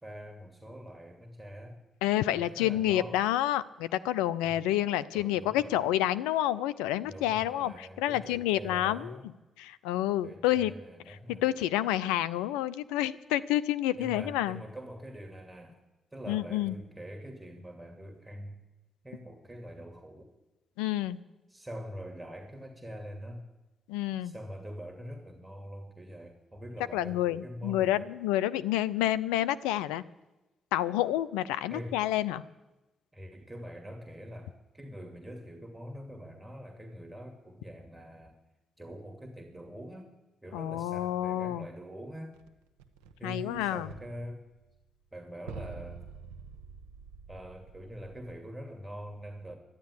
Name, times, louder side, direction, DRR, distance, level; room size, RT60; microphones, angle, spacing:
voice 1, 0.0-1.8 2.3-3.2 4.4-4.6 5.1-6.0 7.0-9.3 10.2-11.4 14.0-15.8 16.1-18.6 19.0-20.2 21.5-23.4 24.2-28.1 31.7-32.0 33.1-38.3 38.8-40.2 40.4-42.4 43.2-44.4 45.1-46.0 47.3-49.6, equal, 15° right, 4 dB, 2.4 m, -44 dB
voice 2, 2.0-9.2 9.6-10.7 11.1-14.6 16.3-16.8 20.8-21.2 23.9-24.3 26.9-30.0 30.7-32.4 40.5-41.7 43.2-43.9, left 13 dB, 85° left, 16 dB, 0.5 m, -29 dB
sound 1, 42.3-43.6 43.9-44.9 45.2-45.3 45.5-48.4, right 5 dB, 90° right, 0.9 m, -47 dB
12.0 x 10.5 x 9.9 m, 1.0 s
hypercardioid pair, 50°, 0 cm